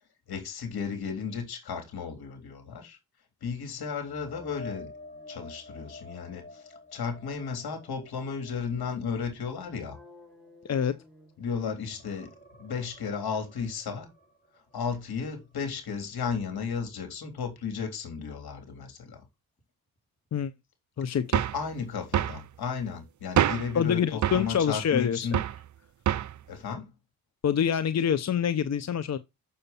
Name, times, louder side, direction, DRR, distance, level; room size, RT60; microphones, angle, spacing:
voice 1, 0.3-3.0 3.4-4.9 5.3-10.0 11.4-12.3 12.6-14.1 14.7-19.2 21.5-25.4 26.5-26.9, left 6 dB, 70° left, 3.7 m, -34 dB
sound 1, 4.0-11.4 11.8-15.6 16.0-16.2 19.6-19.7, left 2 dB, 25° left, 4.8 m, -50 dB
sound 2, 9.5-12.0, left 3 dB, ahead, 5.8 m, -55 dB
voice 2, 21.0-21.4 23.7-25.3 27.4-29.2, left 8 dB, 40° left, 0.8 m, -26 dB
sound 3, 21.3-21.6 22.1-22.4 23.4-23.7 24.2-24.5 25.3-25.6 26.1-26.4, right 11 dB, 45° right, 0.6 m, -26 dB
6.8 x 6.7 x 4.2 m
supercardioid pair, 50°, 40 cm